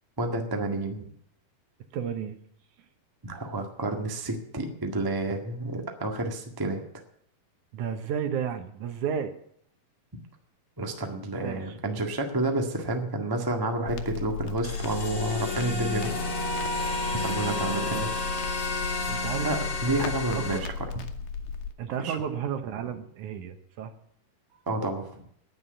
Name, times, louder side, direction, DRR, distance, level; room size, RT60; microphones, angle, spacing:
voice 1, 0.2-1.0 3.2-6.8 10.8-16.1 17.1-18.1 19.4-20.7 22.0-22.2 24.7-25.1, right 2 dB, 20° right, 3 dB, 0.5 m, -30 dB
voice 2, 1.9-2.4 7.7-9.3 11.4-11.8 17.4-18.1 19.1-19.6 20.0-20.7 21.8-23.9 24.5-24.6, right 8 dB, 70° right, 9 dB, 2.3 m, -33 dB
Crackle, 13.9-21.7, left 5 dB, 90° left, 2.9 m, -35 dB
sound 1, 14.6-20.6, left 2 dB, 35° left, 2.0 m, -32 dB
11.0 x 9.8 x 8.0 m, 0.70 s
omnidirectional pair, 4.0 m